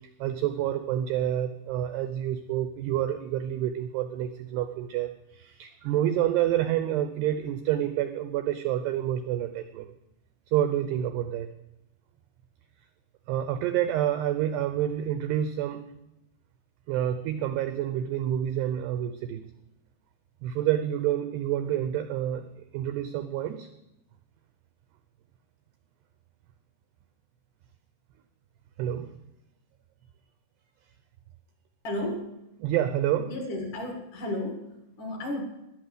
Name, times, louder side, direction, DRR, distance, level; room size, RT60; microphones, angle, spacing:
voice 1, 0.2-9.9 10.5-11.5 13.3-15.8 16.9-19.4 20.4-22.5 22.7-23.7 28.8-29.1 32.6-33.3, right 11 dB, 85° right, 9 dB, 2.3 m, -28 dB
voice 2, 31.8-32.4 33.3-35.4, left 1 dB, 50° left, 2 dB, 2.8 m, -33 dB
12.5 x 11.0 x 8.0 m, 0.89 s
omnidirectional pair, 5.8 m